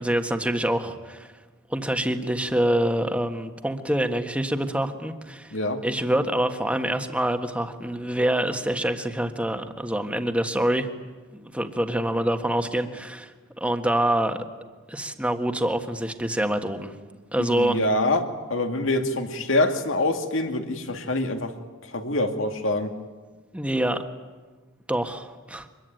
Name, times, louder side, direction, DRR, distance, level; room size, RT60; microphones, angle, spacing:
voice 1, 0.0-1.3 1.7-5.6 5.8-10.9 11.3-14.4 14.9-16.9 17.3-17.8 23.5-24.0 24.9-25.7, right 1 dB, 5° right, 6 dB, 1.5 m, -26 dB
voice 2, 17.4-21.5 21.9-22.9, left 2 dB, 70° left, 5 dB, 2.3 m, -25 dB
25.0 x 22.0 x 9.2 m, 1.3 s
head